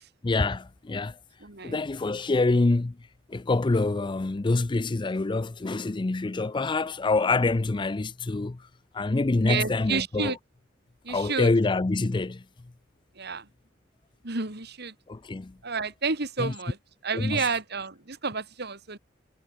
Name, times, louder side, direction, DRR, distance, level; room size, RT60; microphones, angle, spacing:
voice 1, 0.2-1.2 1.6-3.0 3.3-8.7 8.9-10.4 11.1-12.4 15.1-15.6 16.4-16.5 17.1-17.6, left 3 dB, 25° left, 0.5 m, -26 dB
voice 2, 1.4-1.7 9.5-10.4 11.0-11.5 13.2-13.4 14.2-14.9 15.6-16.8 17.0-19.0, right 4 dB, 60° right, 2.5 m, -30 dB
head